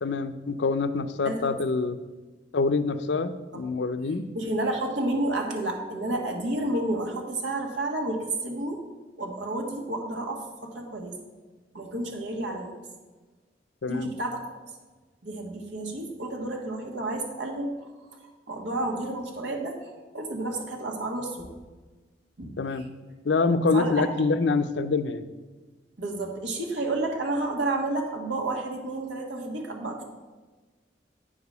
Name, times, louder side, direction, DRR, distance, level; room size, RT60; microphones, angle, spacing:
voice 1, 0.0-2.0 2.5-4.3 13.8-14.1 22.6-22.8 23.2-25.3, left 4 dB, 70° left, 12 dB, 0.5 m, -25 dB
voice 2, 4.3-8.8 9.2-11.2 11.7-12.8 13.9-14.5 15.2-17.7 18.1-18.2 18.5-21.5 22.4-22.5 23.7-24.1 26.0-30.0, right 2 dB, 80° right, 1 dB, 1.5 m, -30 dB
8.7 x 4.8 x 6.7 m, 1.3 s
head